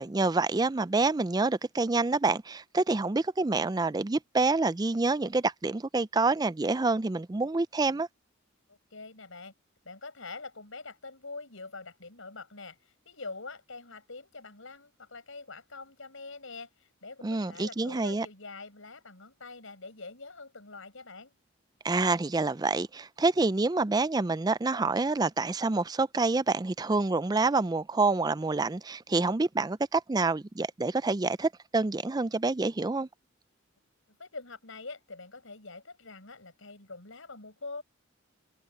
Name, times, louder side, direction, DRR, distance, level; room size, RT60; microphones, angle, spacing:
voice 1, 0.0-8.1 17.2-18.3 21.8-33.1, right 3 dB, 20° right, 0.4 m, -27 dB
voice 2, 8.7-9.5 9.8-21.3 34.2-37.8, left 3 dB, 75° left, 5.4 m, -45 dB
head